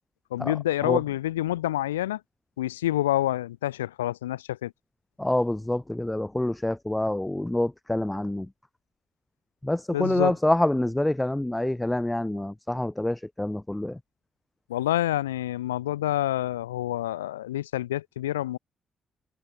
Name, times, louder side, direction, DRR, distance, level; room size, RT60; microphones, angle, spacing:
voice 1, 0.3-2.2 2.6-4.7 9.9-10.4 14.7-18.6, left 14 dB, 80° left, 1.1 m, -27 dB
voice 2, 5.2-8.5 9.6-13.9, left 1 dB, 10° left, 0.5 m, -26 dB
figure-of-eight pair, 40°, 0 cm